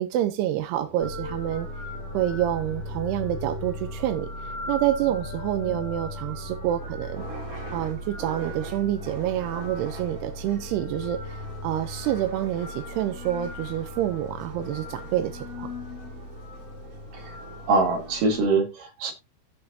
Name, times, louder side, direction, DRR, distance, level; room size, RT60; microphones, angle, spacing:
voice 1, 0.0-1.7 2.1-7.2 7.7-15.7, right 12 dB, 80° right, 2.4 m, -28 dB
sound 1, 0.8-18.1, right 2 dB, 25° right, 2.4 m, -45 dB
sound 2, 1.0-18.5, left 2 dB, 70° left, 5.4 m, -37 dB
voice 2, 17.7-19.1, right 3 dB, 55° right, 3.1 m, -23 dB
16.0 x 5.6 x 2.7 m
omnidirectional pair, 5.4 m